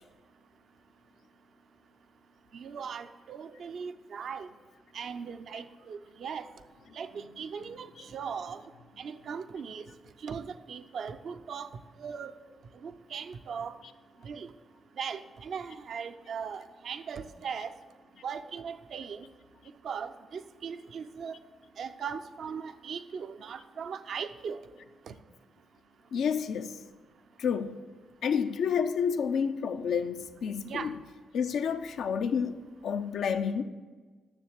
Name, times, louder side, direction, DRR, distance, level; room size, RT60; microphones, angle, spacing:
voice 1, 2.5-4.5 4.9-6.5 6.9-8.6 9.0-9.9 10.2-11.7 12.0-12.3 12.8-13.8 14.2-14.5 15.0-17.7 18.2-19.3 19.8-21.4 21.8-24.6 25.1-25.2 30.6-30.9, right 6 dB, 70° right, 0.6 m, -39 dB
voice 2, 7.1-7.7 13.8-13.9 26.1-26.8 27.4-27.8 28.2-31.0 31.3-33.6, left 7 dB, 75° left, 0.6 m, -30 dB
9.9 x 7.0 x 7.4 m
supercardioid pair, 50°, 0 cm